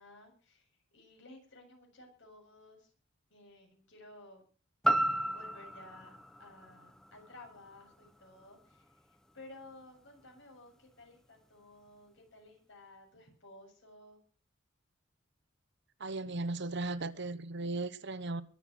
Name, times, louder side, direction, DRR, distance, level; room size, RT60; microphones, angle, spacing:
voice 1, 0.0-2.9 3.3-4.4 5.3-14.2, left 2 dB, 65° left, 7.5 m, -55 dB
sound 1, 4.8-8.9 9.4-9.5, right 1 dB, 5° left, 0.8 m, -34 dB
voice 2, 16.0-18.4, right 2 dB, 60° right, 1.1 m, -36 dB
22.5 x 7.9 x 6.3 m
head